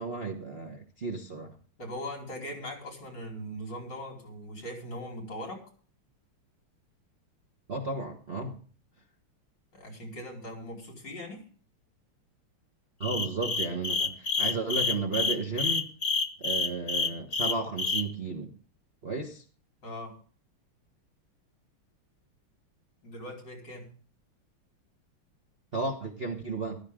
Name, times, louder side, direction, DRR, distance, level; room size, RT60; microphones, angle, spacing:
voice 1, 0.0-1.6 7.7-8.6 13.0-15.9 16.4-18.5 19.0-19.4 25.7-26.8, right 3 dB, 35° right, 1.3 m, -33 dB
voice 2, 1.8-5.6 9.7-11.5 19.8-20.2 23.0-23.9, equal, 55° left, 5.2 m, -40 dB
sound 1, 13.0-18.0, left 4 dB, 75° left, 0.4 m, -28 dB
14.5 x 13.0 x 3.7 m
omnidirectional pair, 2.4 m